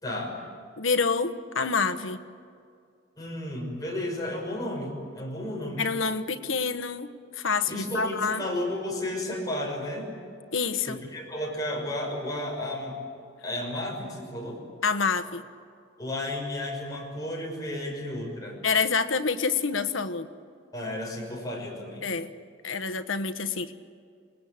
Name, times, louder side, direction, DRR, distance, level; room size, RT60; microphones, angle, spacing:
voice 1, 0.0-0.4 3.2-5.9 7.7-10.2 10.9-13.0 13.4-14.6 16.0-18.6 20.7-22.1, left 1 dB, 20° left, -1 dB, 6.2 m, -33 dB
voice 2, 0.8-2.2 5.8-8.5 10.5-11.0 14.8-15.4 18.6-20.3 22.0-22.3 22.6-23.7, left 5 dB, 85° left, 12 dB, 1.2 m, -27 dB
27.0 x 19.5 x 8.8 m, 2.4 s
head